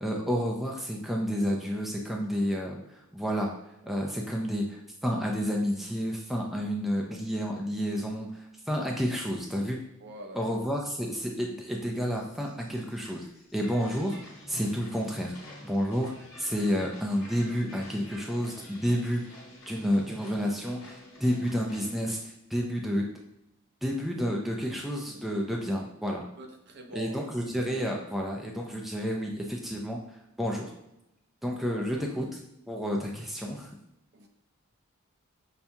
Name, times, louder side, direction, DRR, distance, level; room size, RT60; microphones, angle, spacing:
voice 1, 0.0-2.8 3.1-3.5 3.8-9.8 10.3-13.3 13.5-14.2 14.5-15.3 15.6-16.1 16.4-19.4 19.7-23.1 23.8-26.2 26.9-30.0 30.4-30.7 31.4-32.4 32.7-33.7, equal, ahead, -1 dB, 0.4 m, -30 dB
voice 2, 10.0-10.5 25.1-25.4 26.4-27.3 31.4-32.1 34.1-34.3, right 1 dB, 50° right, 2 dB, 0.6 m, -46 dB
sound 1, 12.1-21.9, left 1 dB, 60° left, 1.2 m, -49 dB
5.7 x 2.2 x 2.7 m, 0.85 s
head